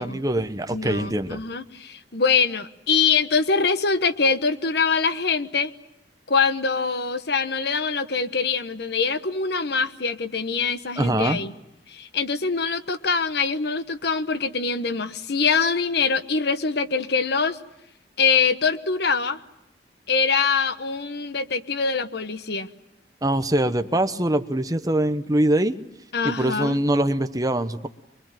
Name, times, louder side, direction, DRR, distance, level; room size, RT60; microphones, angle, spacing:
voice 1, 0.0-1.4 11.0-11.4 23.2-25.8 26.2-27.9, right 1 dB, 20° right, 9 dB, 1.1 m, -23 dB
voice 2, 0.7-5.7 6.3-11.5 11.9-17.6 18.2-19.4 20.1-22.7 26.1-26.8, left 5 dB, 65° left, 11 dB, 1.2 m, -24 dB
24.0 x 24.0 x 9.0 m, 0.87 s
head